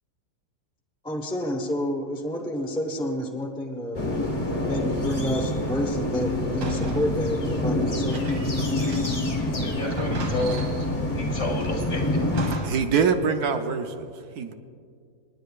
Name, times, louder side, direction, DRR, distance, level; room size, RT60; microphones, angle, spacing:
voice 1, 1.0-4.0 4.7-8.4, equal, 5° left, 2 dB, 0.8 m, -29 dB
spider monkeys, 3.9-12.6, left 1 dB, 25° left, 1.1 m, -27 dB
Cellule intérieur, 6.6-9.3 9.6-9.7 9.9-11.0 11.6-12.9, right 3 dB, 85° right, 2.1 m, -38 dB
voice 2, 9.6-12.3 12.6-12.7, left 1 dB, 50° left, 0 dB, 2.3 m, -31 dB
voice 3, 12.6-14.5, right 6 dB, 70° right, 6 dB, 1.3 m, -24 dB
28.0 x 10.5 x 2.4 m, 2.2 s
omnidirectional pair, 1.8 m